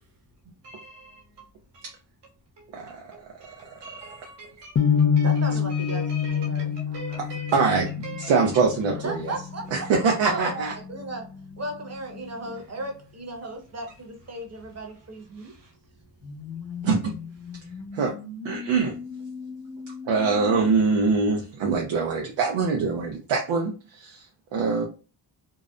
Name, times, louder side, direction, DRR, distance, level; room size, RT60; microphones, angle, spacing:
voice 1, 0.6-1.1 1.7-1.8 3.1-5.3 5.9-6.7 6.9-7.5 8.0-8.3, right 2 dB, 70° right, 1.1 m, -42 dB
voice 2, 2.7-3.7 7.2-9.3 9.7-10.7 16.8-17.1 17.9-18.1 18.4-19.0 20.1-24.8, right 4 dB, 90° right, 0.5 m, -24 dB
sound 1, 4.8-10.8, left 7 dB, 30° left, 0.4 m, -27 dB
voice 3, 5.2-7.2 8.9-9.6 10.3-11.3 11.6-15.5, right 2 dB, 35° right, 0.9 m, -36 dB
sound 2, 5.8-5.9 6.4-13.0 16.2-20.7, left 5 dB, 50° left, 1.1 m, -41 dB
2.7 x 2.0 x 2.3 m
cardioid pair, 65°, 44 cm